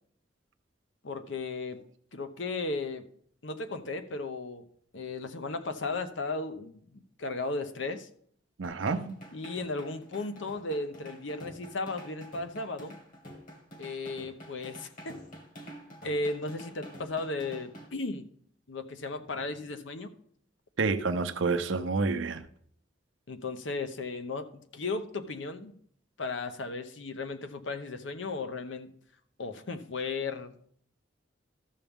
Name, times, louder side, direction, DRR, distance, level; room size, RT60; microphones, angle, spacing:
voice 1, 1.0-1.8 2.1-3.0 3.4-4.6 4.9-8.1 9.3-13.0 13.8-15.2 16.0-18.3 18.7-20.1 23.3-25.8 26.2-28.9 29.4-30.5, left 3 dB, 75° left, 0.8 m, -35 dB
sound 1, 8.6-17.9, equal, 45° left, 1.9 m, -48 dB
voice 2, 8.6-9.2 20.8-22.4, right 4 dB, 85° right, 0.6 m, -29 dB
13.0 x 7.0 x 3.6 m
head